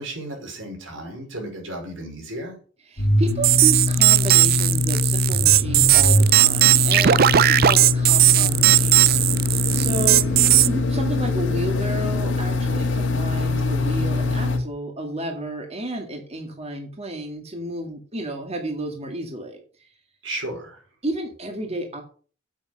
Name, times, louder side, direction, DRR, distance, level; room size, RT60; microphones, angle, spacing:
voice 1, 0.0-2.6 10.1-10.4 20.2-20.8, right 1 dB, 90° right, 2 dB, 5.0 m, -34 dB
voice 2, 2.9-10.2 10.7-19.9 21.0-22.0, right 1 dB, 35° right, 3 dB, 2.0 m, -31 dB
sound 1, 3.0-14.6, left 2 dB, 75° left, 2.2 m, -23 dB
sound 2, 3.4-10.7, right 13 dB, 50° right, 0.5 m, -17 dB
8.6 x 8.2 x 6.5 m, 0.41 s
head